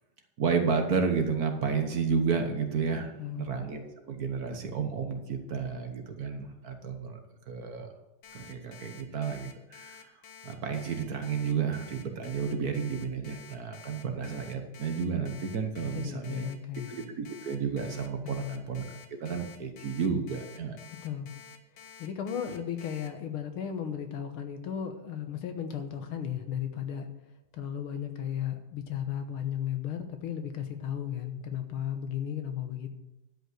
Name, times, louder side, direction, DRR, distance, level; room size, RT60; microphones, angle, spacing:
voice 1, 0.4-7.2 7.5-7.9 8.3-10.1 10.4-16.5 16.9-20.8, right 5 dB, 55° right, 5 dB, 1.3 m, -31 dB
voice 2, 3.2-3.5 15.9-17.0 18.4-18.6 20.9-21.3 22.0-27.1 27.5-32.9, left 9 dB, 85° left, 7 dB, 2.0 m, -35 dB
Alarm, 8.2-23.1, left 8 dB, 65° left, 1.7 m, -50 dB
11.5 x 5.4 x 7.7 m, 0.97 s
omnidirectional pair, 2.3 m